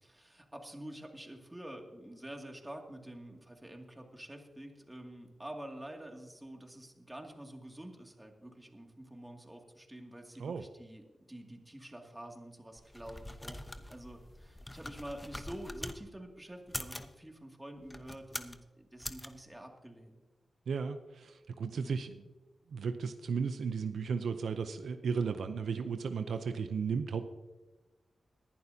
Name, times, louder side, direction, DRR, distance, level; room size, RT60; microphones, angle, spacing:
voice 1, 0.0-20.2 21.7-22.0, right 1 dB, 15° right, 2 dB, 2.3 m, -48 dB
sound 1, 12.8-16.0 16.6-17.1 17.8-18.6 19.0-19.3, left 1 dB, 15° left, 0.9 m, -43 dB
voice 2, 20.7-22.2 22.7-27.3, right 5 dB, 85° right, 9 dB, 0.6 m, -35 dB
20.5 x 11.0 x 2.8 m, 1.2 s
cardioid pair, 55°, 0 cm